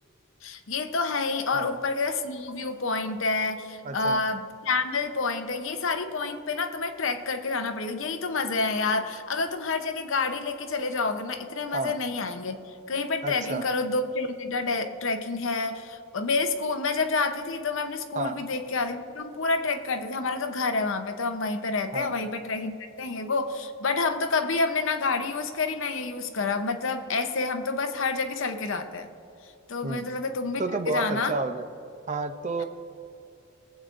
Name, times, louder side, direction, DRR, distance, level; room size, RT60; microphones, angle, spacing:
voice 1, 0.4-29.1 29.7-31.3, left 3 dB, 65° left, 7 dB, 0.8 m, -28 dB
voice 2, 3.8-4.2 11.7-12.0 13.2-13.7 18.1-18.4 21.9-22.1 29.8-30.1 30.6-31.7 32.1-32.6, right 3 dB, 35° right, 8 dB, 0.5 m, -31 dB
22.5 x 8.1 x 2.6 m, 2.7 s
head